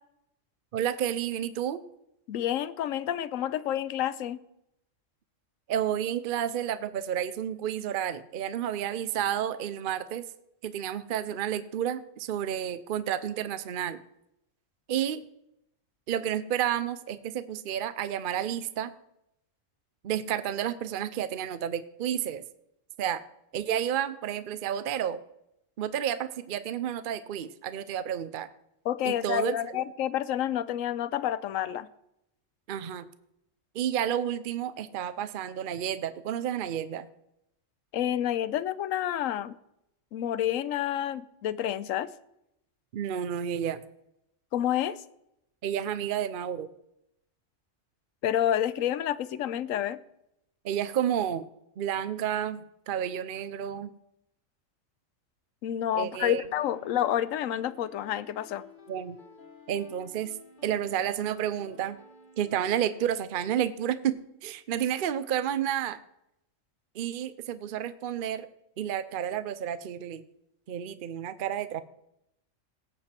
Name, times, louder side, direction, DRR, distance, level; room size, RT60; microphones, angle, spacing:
voice 1, 0.7-1.8 5.7-10.2 10.6-14.0 14.9-15.2 16.1-18.9 20.0-22.4 23.0-23.2 23.5-25.2 25.8-28.5 29.0-29.5 32.7-33.1 33.7-37.1 42.9-43.8 45.6-46.7 50.6-51.5 51.8-52.6 52.9-53.9 55.9-56.4 58.9-59.2 59.7-60.4 60.6-62.0 62.4-66.0 66.9-68.5 68.8-70.2 70.7-71.8, right 10 dB, 55° right, 0.7 m, -31 dB
voice 2, 2.3-4.4 28.8-31.9 37.9-39.6 40.1-42.1 44.5-45.0 48.2-50.0 55.6-58.6, left 11 dB, 90° left, 1.0 m, -29 dB
sound 1, 56.4-63.1, left 4 dB, 40° left, 1.2 m, -53 dB
18.0 x 7.8 x 4.4 m
omnidirectional pair, 1.3 m